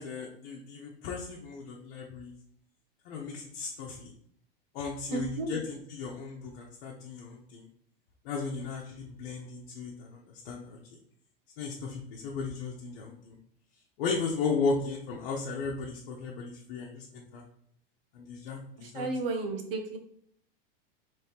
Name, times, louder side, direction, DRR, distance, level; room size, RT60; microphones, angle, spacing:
voice 1, 0.0-2.3 3.0-4.1 4.7-7.7 8.2-10.8 11.6-13.4 14.0-17.4 18.1-19.1, left 4 dB, 65° left, -2 dB, 1.0 m, -35 dB
voice 2, 5.1-5.5 18.8-20.0, right 3 dB, 70° right, 5 dB, 1.1 m, -33 dB
4.3 x 3.4 x 3.5 m, 0.66 s
supercardioid pair, 140°, 29 cm